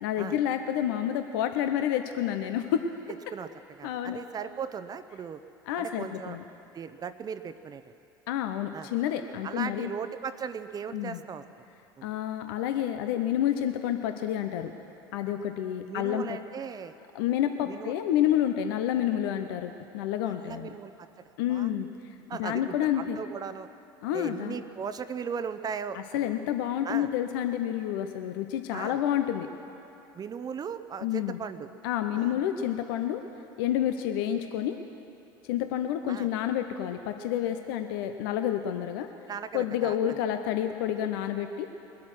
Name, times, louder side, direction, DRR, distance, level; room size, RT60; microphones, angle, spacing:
voice 1, 0.0-2.9 3.8-4.2 5.7-6.4 8.3-9.9 10.9-11.2 12.0-14.7 15.1-16.4 17.1-20.7 21.4-23.2 24.0-24.6 25.9-29.5 31.0-31.4 31.8-33.2 33.6-34.8 35.5-39.1 39.5-41.7, left 10 dB, 75° left, 7 dB, 0.7 m, -29 dB
voice 2, 3.8-5.4 5.8-6.4 6.7-7.8 8.7-8.9 9.4-11.4 12.0-12.1 15.8-17.0 17.6-17.9 20.3-20.9 21.5-21.7 22.3-23.7 24.1-26.0 26.8-27.1 28.7-29.0 30.1-31.7 32.1-32.4 36.1-36.3 39.3-40.2, right 6 dB, 35° right, 11 dB, 0.7 m, -37 dB
21.0 x 8.5 x 6.3 m, 2.9 s
hypercardioid pair, 80°, 12 cm